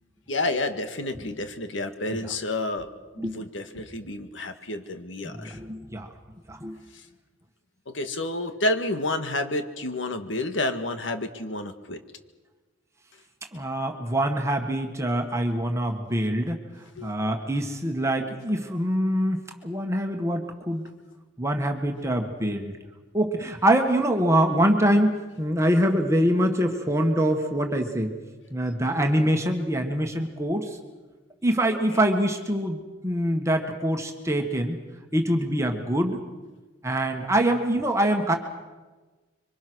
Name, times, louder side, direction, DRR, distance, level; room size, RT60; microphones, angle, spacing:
voice 1, 0.3-5.6 6.9-7.1 7.8-12.0 17.0-17.1 31.9-32.0, left 2 dB, 80° left, 8 dB, 1.8 m, -30 dB
voice 2, 5.2-6.1 6.5-6.8 13.5-16.6 17.0-20.9 21.4-22.7 23.1-28.1 28.5-30.8 31.4-34.8 35.1-36.2 36.8-38.4, right 1 dB, 15° right, 3 dB, 1.7 m, -24 dB
26.0 x 24.5 x 6.3 m, 1.3 s
head